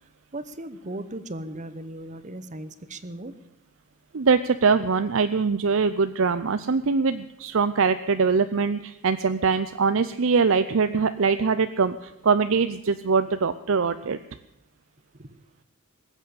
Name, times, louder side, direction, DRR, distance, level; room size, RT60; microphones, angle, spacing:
voice 1, 0.3-3.3 13.2-13.3 15.1-15.4, right 1 dB, 35° right, 13 dB, 1.0 m, -37 dB
voice 2, 4.1-14.2, right 5 dB, 60° right, 11 dB, 0.6 m, -23 dB
20.0 x 8.4 x 8.4 m, 0.84 s
head